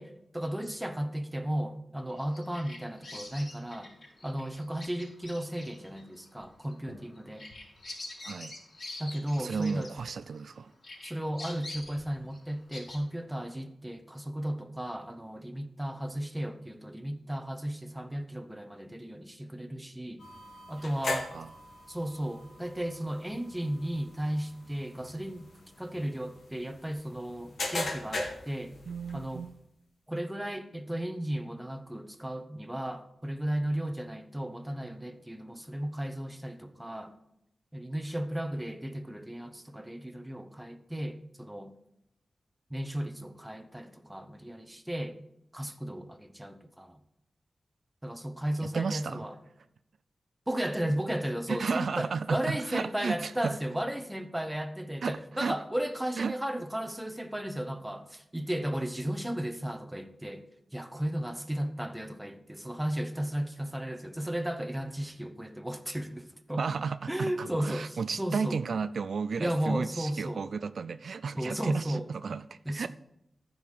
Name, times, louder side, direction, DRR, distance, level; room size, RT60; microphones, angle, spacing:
voice 1, 0.0-3.9 4.2-7.5 9.0-9.9 11.0-20.2 20.7-21.3 21.9-25.5 25.8-28.7 29.1-29.5 30.1-37.1 37.7-41.7 42.7-45.2 45.5-47.0 48.0-49.4 50.5-60.4 60.7-66.6 67.1-68.6 69.4-70.5 71.4-72.1 72.7-72.9, right 1 dB, 5° right, 0.8 m, -35 dB
Bird vocalization bird call bird song, 2.1-10.5 10.8-13.0, left 2 dB, 55° left, 4.6 m, -46 dB
voice 2, 9.4-10.7 21.3-21.5 28.9-29.5 48.6-49.2 51.5-53.5 55.0-55.6 56.2-56.3 66.6-72.9, right 5 dB, 75° right, 0.3 m, -33 dB
sound 1, 20.2-29.5, left 2 dB, 75° left, 2.1 m, -40 dB
14.0 x 5.4 x 4.9 m
wide cardioid pair, 145°, 0 cm